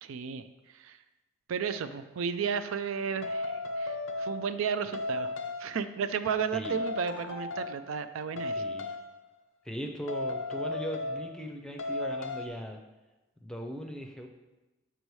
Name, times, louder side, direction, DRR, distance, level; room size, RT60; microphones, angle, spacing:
voice 1, 0.0-1.0 1.5-5.3 5.6-8.6, right 6 dB, 80° right, 10 dB, 0.4 m, -33 dB
sound 1, 3.2-4.6 4.9-5.8 6.6-7.9 8.4-9.1 10.1-11.5 11.8-12.5, left 2 dB, 75° left, 0.6 m, -35 dB
voice 2, 8.5-9.0 9.6-12.8 13.4-14.3, equal, 5° left, 2 dB, 0.5 m, -39 dB
6.7 x 6.2 x 3.1 m, 1.1 s
head